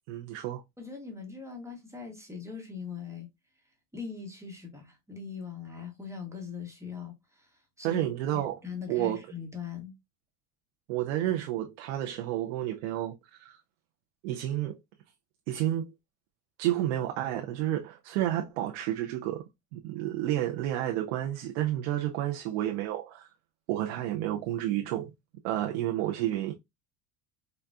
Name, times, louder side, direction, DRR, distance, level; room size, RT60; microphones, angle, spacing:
voice 1, 0.1-0.6 7.8-8.6 8.9-9.2 10.9-13.6 14.2-14.8 15.5-15.9 16.6-19.4 19.7-23.3 23.7-25.1 25.4-26.5, right 13 dB, 90° right, 0.5 m, -30 dB
voice 2, 0.8-3.3 3.9-8.0 8.6-9.9, left 6 dB, 10° right, 0.9 m, -41 dB
3.9 x 2.2 x 2.3 m
supercardioid pair, 115°, 36 cm